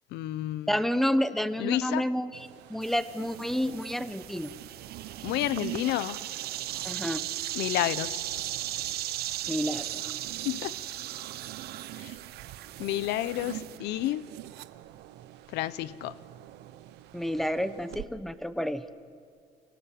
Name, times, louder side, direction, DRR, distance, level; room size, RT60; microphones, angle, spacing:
voice 1, 0.1-0.8 1.6-2.0 5.2-6.2 7.5-8.2 10.4-10.8 12.0-12.2 12.8-14.3 15.5-16.2, left 14 dB, 85° left, 0.8 m, -30 dB
voice 2, 0.7-2.3 2.7-4.5 6.8-7.2 9.5-9.9 17.1-18.8, equal, ahead, 1.3 m, -29 dB
sound 1, 2.3-18.1, right 14 dB, 85° right, 1.0 m, -46 dB
sound 2, 2.8-13.8, right 13 dB, 70° right, 0.9 m, -37 dB
30.0 x 26.0 x 7.7 m
cardioid pair, 110°, 17 cm